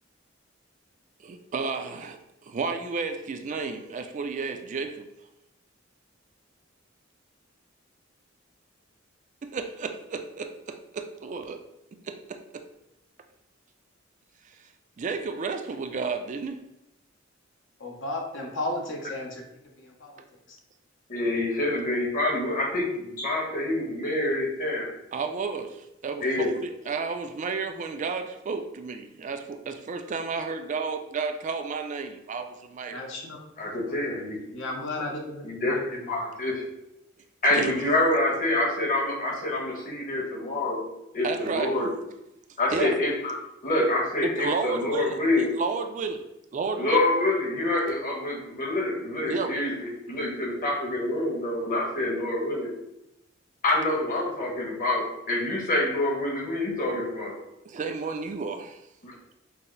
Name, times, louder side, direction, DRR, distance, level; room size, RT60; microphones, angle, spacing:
voice 1, 1.2-5.1 9.4-11.6 12.0-12.6 14.6-14.7 15.0-16.6 25.1-33.0 37.5-37.7 41.2-41.7 42.7-43.0 44.2-45.2 45.6-46.3 46.5-47.0 49.3-49.5 57.6-58.8, right 4 dB, 40° right, 6 dB, 0.4 m, -32 dB
voice 2, 17.8-19.4 19.8-20.2 32.9-33.4 33.9-34.0 34.5-36.1, left 2 dB, 65° left, 0 dB, 0.9 m, -34 dB
voice 3, 21.1-24.9 26.2-26.5 33.6-34.4 35.4-35.8 36.1-36.6 37.4-40.8 41.1-41.9 42.6-45.5 46.8-52.7 53.6-57.3 59.0-59.1, left 2 dB, 45° left, -2 dB, 1.3 m, -26 dB
5.7 x 2.0 x 3.8 m, 0.86 s
head